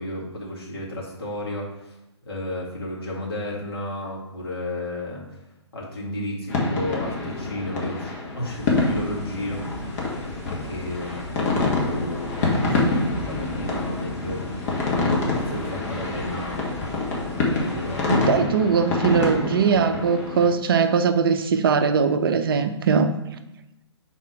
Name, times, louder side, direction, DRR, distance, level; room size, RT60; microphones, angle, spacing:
voice 1, 0.0-2.0 2.3-5.4 5.7-9.6 10.6-14.6 14.9-16.7 17.5-18.5, left 1 dB, 55° left, -4 dB, 2.2 m, -33 dB
sound 1, 6.5-20.5, left 3 dB, 35° left, 1.4 m, -26 dB
sound 2, 8.5-18.0, left 1 dB, 15° left, 1.4 m, -39 dB
voice 2, 18.1-23.1, right 6 dB, 50° right, 8 dB, 0.5 m, -20 dB
5.6 x 4.2 x 4.7 m, 0.90 s
figure-of-eight pair, 125°, 15 cm